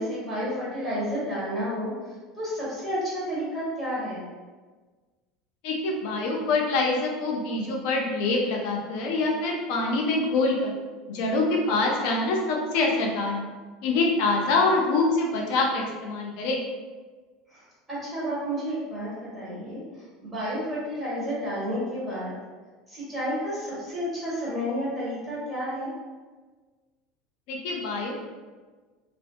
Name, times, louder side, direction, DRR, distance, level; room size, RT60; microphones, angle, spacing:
voice 1, 0.0-1.9 2.4-4.2 17.5-17.6 17.9-19.8 20.2-22.3 22.9-25.9, equal, 15° right, -9 dB, 1.4 m, -31 dB
voice 2, 5.6-10.7 11.1-13.5 13.8-16.6 27.5-28.1, left 3 dB, 70° left, 0 dB, 0.5 m, -25 dB
2.5 x 2.4 x 2.2 m, 1.4 s
supercardioid pair, 120°, 0 cm